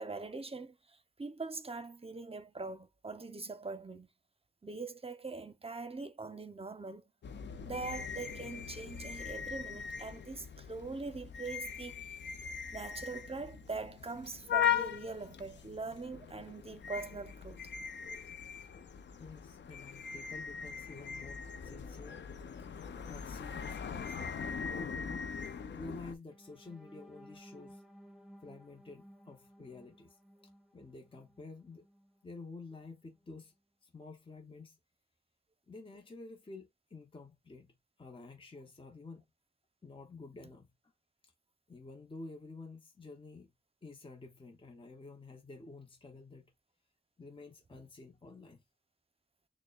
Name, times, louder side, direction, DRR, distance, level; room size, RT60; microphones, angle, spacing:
voice 1, 0.0-4.1 4.6-7.0 7.6-12.1 12.7-17.6, right 3 dB, 35° right, 0.7 m, -42 dB
sound 1, 7.2-26.1, left 8 dB, 85° left, 0.5 m, -40 dB
voice 2, 19.2-22.2 22.6-25.3 25.7-27.8 28.4-30.2 30.7-31.9 32.2-33.5 33.8-34.8 35.7-39.2 39.8-40.7 41.2-41.3 41.7-43.5 43.8-46.5 47.2-48.6, left 3 dB, 30° left, 0.8 m, -50 dB
sound 2, 26.3-32.2 32.7-32.9 33.2-33.4, equal, ahead, 1.2 m, -58 dB
6.3 x 2.1 x 2.3 m
cardioid pair, 45°, 18 cm